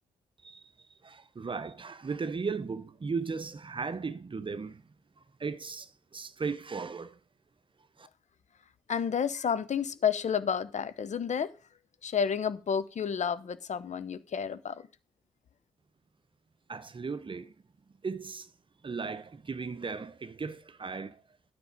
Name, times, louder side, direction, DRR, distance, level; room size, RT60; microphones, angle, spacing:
voice 1, 0.4-7.2 8.0-8.1 16.7-17.5 18.0-18.5 18.8-21.2, right 4 dB, 35° right, 0.8 m, -37 dB
voice 2, 8.9-11.5 12.0-14.8, left 7 dB, 50° left, 0.8 m, -30 dB
9.5 x 7.0 x 5.1 m
hypercardioid pair, 45°, 16 cm